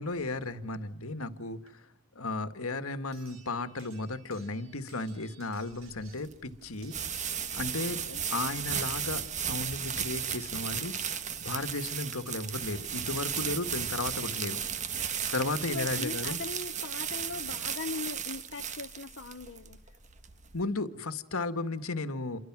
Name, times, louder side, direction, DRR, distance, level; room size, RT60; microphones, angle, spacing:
voice 1, 0.0-1.8 2.2-7.2 7.5-8.0 8.3-10.9 11.4-14.6 15.3-16.4 20.5-22.4, left 2 dB, 80° left, 1.8 m, -34 dB
sound 1, 1.7-1.8 3.1-16.1 17.4-17.5 17.8-17.9, right 6 dB, 80° right, 7.0 m, -57 dB
sound 2, 5.7-20.6, right 8 dB, 35° right, 1.6 m, -35 dB
voice 2, 15.7-19.8, left 4 dB, 55° left, 0.9 m, -40 dB
29.0 x 24.0 x 6.2 m
head